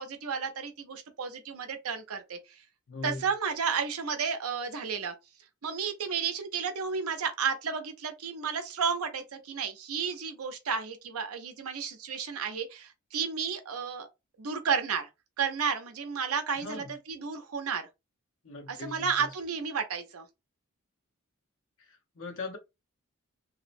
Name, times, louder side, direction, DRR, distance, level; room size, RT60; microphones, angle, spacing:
voice 1, 0.0-2.6 3.0-5.1 5.6-14.1 14.4-15.1 15.4-17.9 18.7-20.3, right 6 dB, 90° right, 0.6 m, -32 dB
voice 2, 2.9-3.3 16.6-16.9 18.4-19.3 21.9-22.6, left 3 dB, 65° left, 0.7 m, -40 dB
2.7 x 2.0 x 2.5 m
head